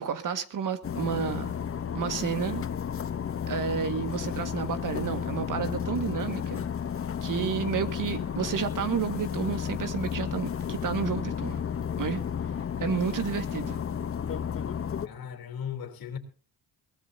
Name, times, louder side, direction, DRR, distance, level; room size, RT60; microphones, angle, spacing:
voice 1, 0.0-1.6 1.9-2.6 3.5-6.6 7.2-11.6 12.0-12.2 12.8-13.8, right 7 dB, 55° right, 1.8 m, -31 dB
sound 1, 0.8-15.1, left 8 dB, 35° left, 0.8 m, -32 dB
voice 2, 15.0-16.2, left 8 dB, 65° left, 3.3 m, -37 dB
22.5 x 17.0 x 2.7 m
cardioid pair, 90°, 38 cm